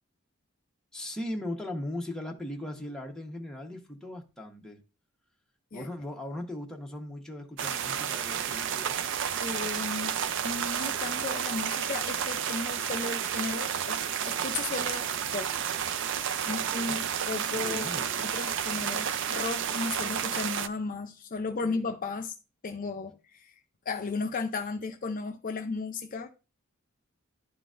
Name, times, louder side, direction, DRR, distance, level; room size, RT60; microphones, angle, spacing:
voice 1, 0.9-4.8 5.7-9.0 16.4-17.0 17.4-18.1 21.6-21.8, left 1 dB, 5° left, 1.0 m, -39 dB
sound 1, 7.6-20.7, right 8 dB, 60° right, 0.5 m, -31 dB
voice 2, 9.4-10.1 10.4-15.1 15.3-15.5 16.5-22.3 22.6-23.6 23.9-26.3, left 4 dB, 40° left, 0.5 m, -35 dB
11.5 x 3.9 x 2.5 m
head